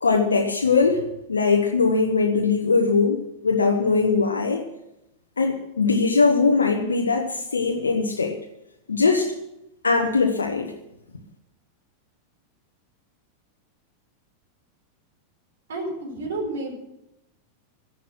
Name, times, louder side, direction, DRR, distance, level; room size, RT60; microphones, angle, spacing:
voice 1, 0.0-4.6 5.4-8.4 8.9-9.3 9.8-10.7, left 4 dB, 75° left, 2 dB, 1.2 m, -21 dB
voice 2, 15.7-16.7, right 2 dB, 65° right, 0 dB, 4.6 m, -30 dB
14.5 x 11.0 x 6.1 m, 0.87 s
figure-of-eight pair, 90°, 0 cm